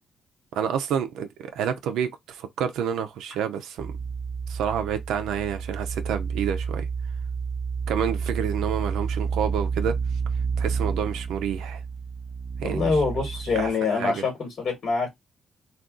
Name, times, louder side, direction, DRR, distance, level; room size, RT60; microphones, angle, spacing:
voice 1, 0.5-4.0 4.5-6.9 7.9-10.0 10.6-11.8 12.6-13.0 13.5-14.2, right 8 dB, 85° right, 0.4 m, -29 dB
sound 1, 3.8-13.7, right 5 dB, 20° right, 0.7 m, -30 dB
voice 2, 12.6-15.1, left 4 dB, 55° left, 1.3 m, -25 dB
2.4 x 2.2 x 3.6 m
cardioid pair, 75°, 0 cm